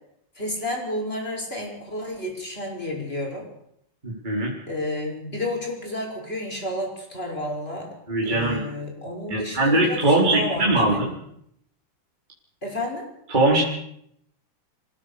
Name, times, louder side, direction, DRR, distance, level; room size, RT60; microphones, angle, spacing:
voice 1, 0.4-3.5 4.7-7.9 8.2-11.0 12.6-13.1, left 1 dB, 15° left, 1 dB, 6.3 m, -31 dB
voice 2, 4.0-4.5 8.1-8.6 9.3-11.1 13.3-13.6, right 2 dB, 15° right, -3 dB, 4.1 m, -21 dB
27.0 x 17.0 x 6.8 m, 0.72 s
omnidirectional pair, 3.9 m